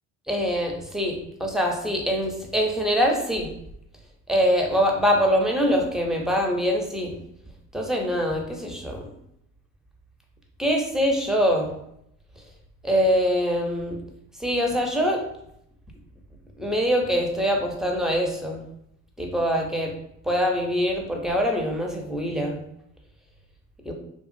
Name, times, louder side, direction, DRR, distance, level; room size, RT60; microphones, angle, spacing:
voice 1, 0.3-3.5 4.3-7.2 7.7-9.0 10.6-11.7 12.8-14.0 14.4-15.2 16.6-18.6 19.2-19.9 20.2-22.6 23.9-24.0, equal, ahead, 1 dB, 0.5 m, -24 dB
2.9 x 2.4 x 2.5 m, 0.76 s
supercardioid pair, 90°, 39 cm